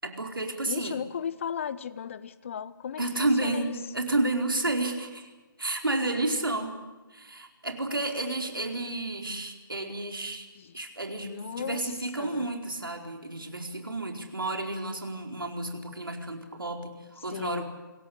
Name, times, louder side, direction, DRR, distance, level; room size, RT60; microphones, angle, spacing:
voice 1, 0.0-1.0 3.0-5.3 5.6-6.8 7.1-10.5 10.7-17.6, right 2 dB, 75° right, 4 dB, 4.6 m, -31 dB
voice 2, 0.7-3.7 10.6-10.7 11.2-11.8 12.2-12.5 17.3-17.6, left 8 dB, 35° left, 17 dB, 1.0 m, -36 dB
27.0 x 17.5 x 8.7 m, 1.2 s
figure-of-eight pair, 145°, 12 cm